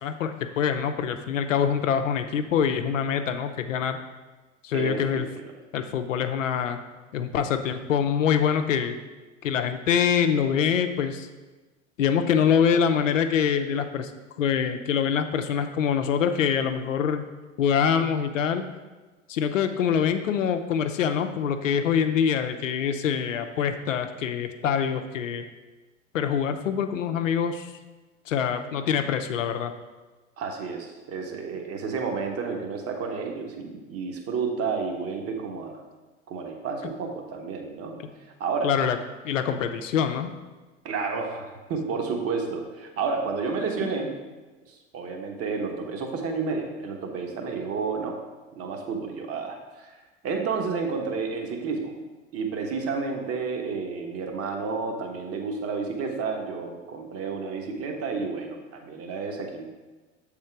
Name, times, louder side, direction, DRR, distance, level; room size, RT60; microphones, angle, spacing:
voice 1, 0.0-4.0 4.6-5.3 5.7-6.8 7.1-9.0 9.4-11.3 12.0-14.1 14.4-17.2 17.6-18.6 19.3-25.5 26.1-27.7 28.3-29.7 38.6-39.0 39.2-40.3 43.8-43.9, left 7 dB, 75° left, 7 dB, 0.6 m, -25 dB
voice 2, 4.7-5.2 30.4-35.8 36.3-37.9 38.4-38.7 40.8-44.1 44.7-48.1 48.5-50.0 50.2-51.9 52.3-59.7, right 4 dB, 35° right, 3 dB, 1.1 m, -31 dB
7.3 x 3.7 x 4.5 m, 1.2 s
figure-of-eight pair, 75°, 39 cm